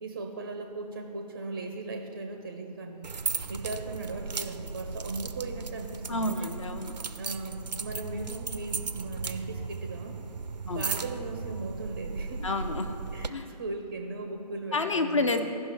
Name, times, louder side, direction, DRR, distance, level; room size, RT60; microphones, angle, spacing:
voice 1, 0.0-3.1 3.5-6.5 7.2-10.2 10.6-12.6 13.1-15.3, right 2 dB, 20° right, 4 dB, 0.5 m, -38 dB
sound 1, 3.0-13.3, right 5 dB, 85° right, 0.5 m, -36 dB
voice 2, 6.1-6.9 10.7-10.9 12.4-13.0 13.3-13.5 14.7-15.4, left 3 dB, 50° left, 7 dB, 0.6 m, -29 dB
15.5 x 5.6 x 4.4 m, 2.8 s
figure-of-eight pair, 145°, 21 cm